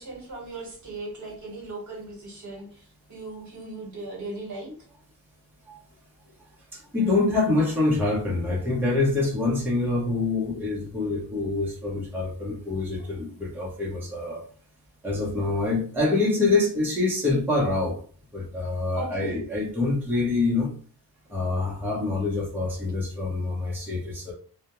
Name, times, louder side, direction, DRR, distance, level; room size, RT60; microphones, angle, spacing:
voice 1, 0.0-4.7 19.0-19.4, right 2 dB, 55° right, -2 dB, 1.0 m, -38 dB
voice 2, 6.7-14.4 15.0-18.0 18.3-20.7 21.3-24.3, left 3 dB, 5° right, -5 dB, 0.7 m, -25 dB
2.3 x 2.1 x 2.9 m, 0.43 s
wide cardioid pair, 165°, 36 cm